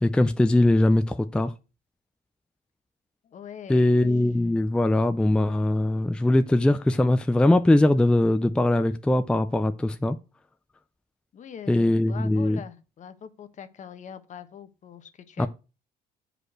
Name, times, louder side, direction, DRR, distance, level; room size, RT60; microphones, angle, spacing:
voice 1, 0.0-1.5 3.7-10.2 11.7-12.6 15.4-15.5, left 1 dB, 5° left, 0.4 m, -21 dB
voice 2, 3.2-4.0 11.3-15.5, left 8 dB, 45° left, 1.1 m, -42 dB
6.4 x 5.1 x 6.3 m
cardioid pair, 110°, 17 cm